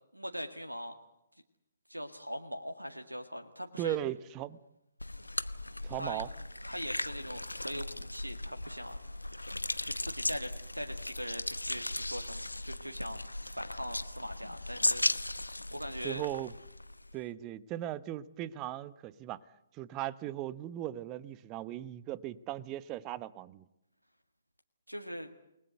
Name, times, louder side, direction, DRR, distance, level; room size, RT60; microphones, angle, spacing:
voice 1, 0.1-1.0 1.9-4.0 5.9-6.2 6.6-9.0 9.8-13.2 13.5-15.1 15.7-16.3 24.9-25.3, equal, 85° right, 6 dB, 1.9 m, -41 dB
voice 2, 3.8-4.6 5.8-6.3 16.0-16.5 17.1-19.4 19.7-23.6, right 14 dB, 20° right, 18 dB, 0.9 m, -38 dB
sound 1, 5.0-17.2, left 1 dB, 80° left, 1.0 m, -37 dB
29.0 x 20.5 x 8.0 m, 0.87 s
figure-of-eight pair, 130°, 0 cm